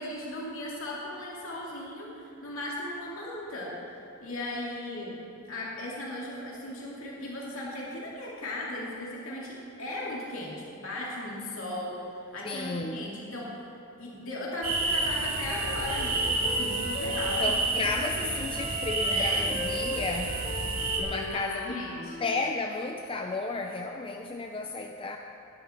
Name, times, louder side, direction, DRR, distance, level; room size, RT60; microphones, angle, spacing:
voice 1, 0.0-13.7 14.0-17.4 18.0-18.2 19.1-19.4 21.1-22.2, left 1 dB, 65° left, -5 dB, 2.6 m, -37 dB
voice 2, 12.4-13.0 17.4-20.4 20.9-21.8 22.2-25.2, left 3 dB, 25° left, 3 dB, 0.5 m, -33 dB
Wind instrument woodwind instrument, 14.5-18.2 18.5-22.5, left 1 dB, 50° left, 2.1 m, -39 dB
sound 1, 14.6-21.0, right 3 dB, 65° right, 3.2 m, -30 dB
19.5 x 11.0 x 4.5 m, 2.6 s
head